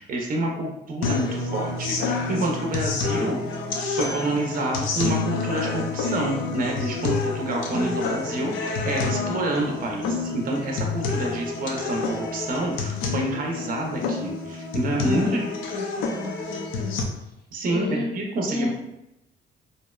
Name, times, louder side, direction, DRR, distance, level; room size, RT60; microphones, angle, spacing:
voice 1, 0.0-3.4 3.8-15.5 17.5-18.7, right 1 dB, 45° right, 0 dB, 0.5 m, -28 dB
sound 1, 1.0-17.0, left 4 dB, 85° left, 0.4 m, -28 dB
voice 2, 7.7-8.0 15.0-15.4 15.7-16.9 17.7-18.1 18.5-18.7, left 2 dB, 65° left, -5 dB, 0.8 m, -32 dB
2.7 x 2.1 x 2.2 m, 0.88 s
cardioid pair, 90°, 20 cm